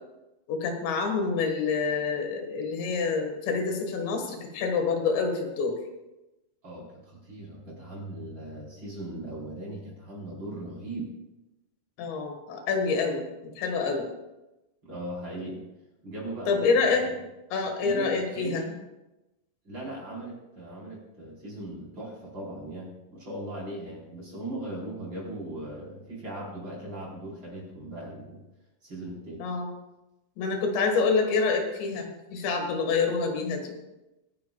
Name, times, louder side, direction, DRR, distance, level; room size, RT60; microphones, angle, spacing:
voice 1, 0.5-5.8 12.0-14.1 16.5-17.1 17.5-18.7 29.4-29.7 30.4-33.8, left 4 dB, 90° left, 4 dB, 3.8 m, -27 dB
voice 2, 6.6-11.1 14.8-15.6 16.0-17.1 17.8-18.8 19.6-28.4 28.8-29.5, right 1 dB, 30° right, -4 dB, 4.3 m, -38 dB
24.0 x 10.5 x 2.3 m, 0.99 s
omnidirectional pair, 4.9 m